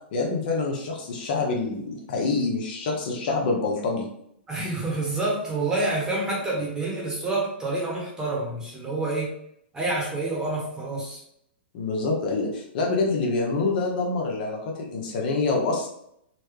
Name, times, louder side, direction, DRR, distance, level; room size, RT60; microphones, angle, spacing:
voice 1, 0.1-4.1 11.7-15.9, left 3 dB, 55° left, 0 dB, 0.8 m, -26 dB
voice 2, 4.5-9.3 9.7-11.2, right 2 dB, 10° right, -4 dB, 1.0 m, -28 dB
4.1 x 2.2 x 3.2 m, 0.72 s
hypercardioid pair, 145°, 6 cm